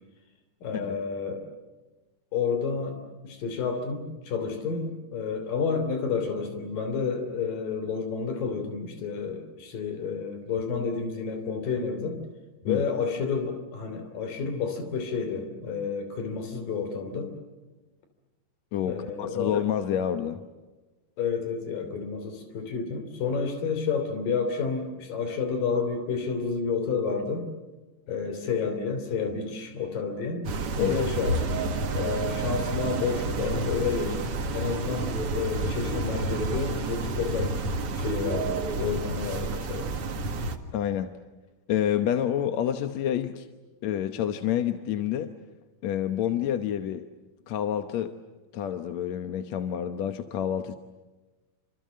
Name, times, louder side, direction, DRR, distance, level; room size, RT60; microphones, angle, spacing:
voice 1, 0.6-1.4 2.3-3.0 3.2-12.2 12.6-17.3 18.9-19.5 21.2-27.5 28.1-30.5 30.8-31.7 31.9-34.2 34.5-37.6 38.0-39.9, left 5 dB, 85° left, 7 dB, 5.0 m, -30 dB
voice 2, 18.7-20.4 30.8-30.9 40.7-41.1 41.7-43.5 43.8-45.3 45.8-47.0 47.5-48.1 48.5-50.8, left 10 dB, 65° left, 8 dB, 2.1 m, -28 dB
sound 1, 30.4-40.6, right 3 dB, 50° right, 2.5 m, -30 dB
28.5 x 27.0 x 7.6 m, 1.2 s
omnidirectional pair, 3.8 m